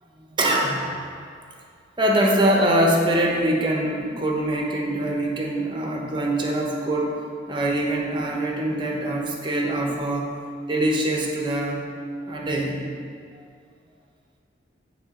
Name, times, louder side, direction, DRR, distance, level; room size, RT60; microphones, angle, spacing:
voice 1, 0.2-0.9 2.0-7.1 7.5-10.3 10.7-11.8 12.2-12.8, right 1 dB, 25° right, -1 dB, 0.8 m, -23 dB
9.4 x 3.6 x 3.7 m, 2.3 s
head